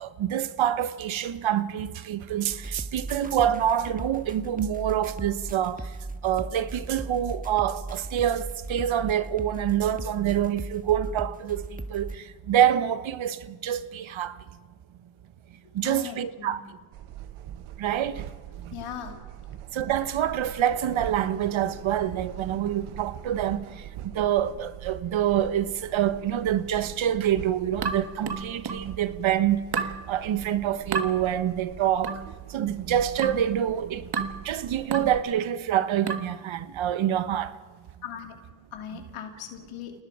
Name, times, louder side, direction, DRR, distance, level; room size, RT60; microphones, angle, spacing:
voice 1, 0.0-5.8 6.2-11.6 11.9-14.4 15.7-16.6 17.8-18.2 18.7-18.8 19.7-23.6 24.1-29.6 30.1-32.1 32.5-34.1 34.4-37.5, right 10 dB, 70° right, 1.3 m, -26 dB
sound 1, 2.5-12.2, right 2 dB, 15° right, 1.6 m, -38 dB
voice 2, 15.8-16.7 18.7-19.2 38.0-38.4 38.7-39.9, left 8 dB, 80° left, 2.8 m, -39 dB
sound 2, 16.9-35.2, right 12 dB, 85° right, 1.0 m, -43 dB
sound 3, 27.8-28.9 29.7-30.0 30.9-31.1 32.0-32.3 33.2-33.5 34.1-34.4 34.9-35.2 36.1-36.4, right 5 dB, 50° right, 1.7 m, -30 dB
28.0 x 19.0 x 5.0 m
supercardioid pair, 55°, 49 cm